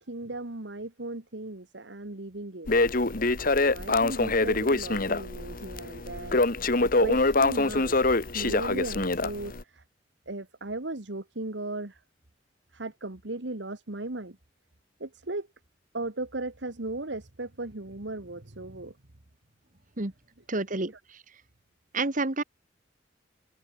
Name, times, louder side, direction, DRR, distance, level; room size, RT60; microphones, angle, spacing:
voice 1, 0.0-2.8 3.7-6.4 6.8-7.9 8.3-9.8 10.3-12.0 12.7-14.4 15.0-15.5 15.9-18.9 20.9-21.0, right 2 dB, 75° right, 1.9 m, -36 dB
Crackle, 2.7-9.6, left 3 dB, 50° left, 1.9 m, -25 dB
voice 2, 20.5-20.9 21.9-22.4, right 2 dB, 45° right, 1.7 m, -28 dB
head